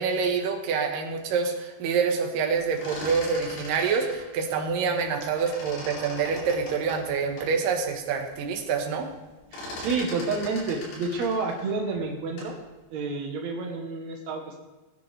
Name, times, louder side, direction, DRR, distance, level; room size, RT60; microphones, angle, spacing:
voice 1, 0.0-9.1, right 5 dB, 65° right, 3 dB, 2.5 m, -26 dB
sound 1, 2.6-5.1 5.4-7.5 8.0-8.1 8.4-8.8 9.1-12.6, left 1 dB, 70° left, 6.1 m, -40 dB
voice 2, 9.5-12.6 12.9-14.6, right 4 dB, 80° right, 1 dB, 1.6 m, -29 dB
19.5 x 10.0 x 3.3 m, 1.2 s
omnidirectional pair, 5.0 m